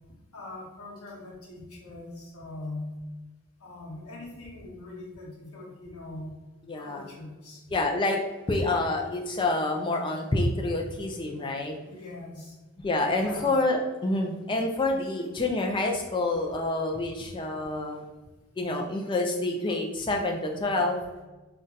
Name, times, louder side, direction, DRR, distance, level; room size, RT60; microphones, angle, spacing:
voice 1, 0.3-3.0 3.6-6.4 6.8-7.6 11.8-12.5 13.2-13.5 20.6-21.1, left 2 dB, 80° left, -4 dB, 0.9 m, -42 dB
voice 2, 6.7-7.1 7.7-8.2 8.5-11.7 12.8-18.0 18.6-21.0, left 2 dB, 20° left, 2 dB, 0.3 m, -27 dB
2.6 x 2.2 x 3.8 m, 1.2 s
head